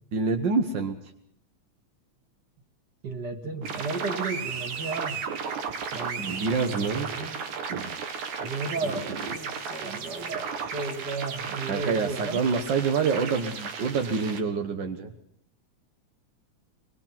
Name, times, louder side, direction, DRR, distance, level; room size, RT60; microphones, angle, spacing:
voice 1, 0.1-1.0 6.2-7.1 7.7-8.0 8.8-9.4 11.7-15.1, right 5 dB, 55° right, 5 dB, 1.4 m, -27 dB
voice 2, 3.0-5.2 5.9-6.3 6.6-7.4 8.4-12.4, right 3 dB, 35° right, 4 dB, 2.7 m, -34 dB
sound 1, 3.6-14.4, right 6 dB, 85° right, 3.2 m, -35 dB
24.0 x 21.5 x 6.0 m, 0.70 s
omnidirectional pair, 3.3 m